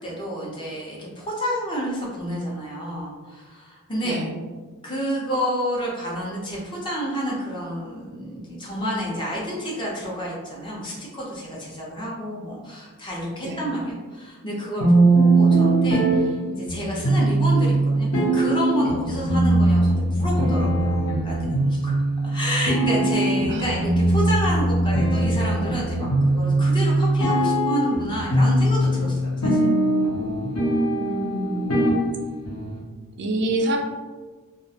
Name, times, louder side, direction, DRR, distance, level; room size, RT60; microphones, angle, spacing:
voice 1, 0.0-4.2 4.8-21.9 22.2-29.7, equal, 20° left, -4 dB, 0.5 m, -29 dB
voice 2, 4.0-4.3 13.4-13.6 23.5-23.8 31.0-31.7 33.2-33.8, right 1 dB, 50° right, 2 dB, 0.3 m, -27 dB
sound 1, 14.8-32.8, right 2 dB, 80° left, 0.7 m, -21 dB
2.3 x 2.1 x 2.7 m, 1.4 s
head